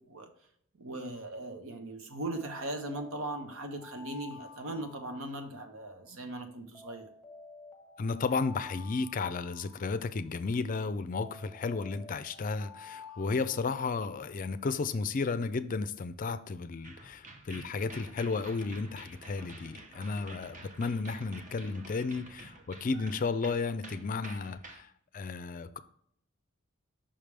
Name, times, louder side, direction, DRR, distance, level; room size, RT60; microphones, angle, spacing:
voice 1, 0.8-7.1, right 2 dB, 80° right, 1.1 m, -39 dB
Alarm, 2.3-6.1 6.7-10.4 11.1-14.3, left 4 dB, ahead, 1.3 m, -51 dB
voice 2, 8.0-25.8, left 4 dB, 40° left, 0.4 m, -33 dB
sound 1, 16.8-24.8, right 2 dB, 35° right, 0.9 m, -50 dB
5.7 x 5.1 x 3.3 m
head